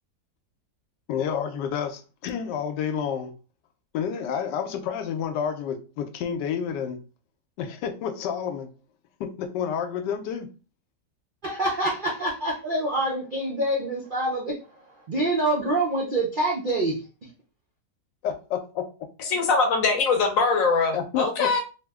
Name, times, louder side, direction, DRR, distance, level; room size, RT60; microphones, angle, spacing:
voice 1, 1.1-3.3 3.9-7.0 7.6-8.7 9.2-10.5 18.2-18.9 20.9-21.6, left 8 dB, 85° left, 1.2 m, -29 dB
voice 2, 11.4-14.6 15.1-17.0, right 1 dB, 90° right, 0.4 m, -26 dB
voice 3, 19.2-21.6, left 4 dB, 60° left, 1.0 m, -22 dB
3.1 x 2.1 x 3.4 m
omnidirectional pair, 1.8 m